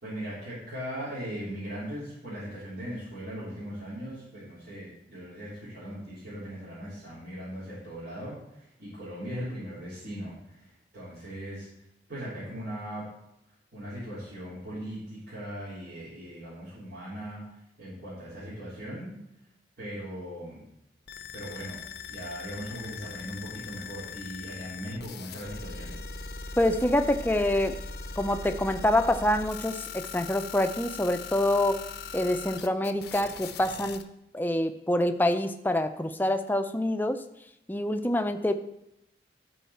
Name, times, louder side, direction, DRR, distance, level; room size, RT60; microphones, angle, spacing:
voice 1, 0.0-11.7 12.1-13.1 13.7-19.2 19.8-20.6 21.3-21.8 22.1-26.0, equal, 85° right, -12 dB, 3.5 m, -39 dB
sound 1, 21.1-34.0, left 5 dB, 65° left, 0.6 m, -40 dB
voice 2, 26.6-27.8 28.2-31.8 32.1-34.0 34.3-37.2 37.7-38.5, left 1 dB, 10° left, 8 dB, 0.4 m, -26 dB
12.5 x 4.7 x 4.3 m, 0.82 s
head